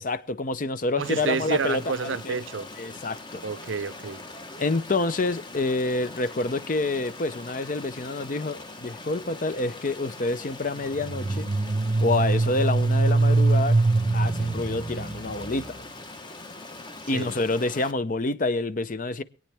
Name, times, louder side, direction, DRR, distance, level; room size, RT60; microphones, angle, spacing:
voice 1, 0.0-2.4 2.8-3.4 4.6-11.5 12.0-13.8 14.1-15.8 17.1-19.2, left 2 dB, 45° left, 0.6 m, -27 dB
voice 2, 0.9-2.7 3.4-4.2 17.1-17.3, right 5 dB, 75° right, 0.6 m, -29 dB
Stream, 1.0-17.9, left 2 dB, 25° left, 1.0 m, -42 dB
sound 1, 10.9-15.8, right 3 dB, 40° right, 0.7 m, -23 dB
24.5 x 9.0 x 3.4 m
head